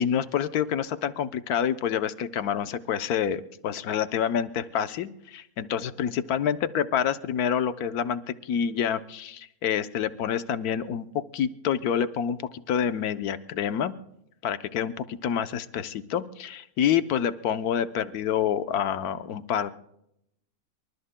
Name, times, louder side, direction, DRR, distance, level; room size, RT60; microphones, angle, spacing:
voice 1, 0.0-11.1 11.3-12.4 12.7-13.9 14.4-19.7, left 8 dB, 80° left, 11 dB, 1.3 m, -27 dB
27.5 x 23.5 x 2.2 m, 0.80 s
omnidirectional pair, 1.6 m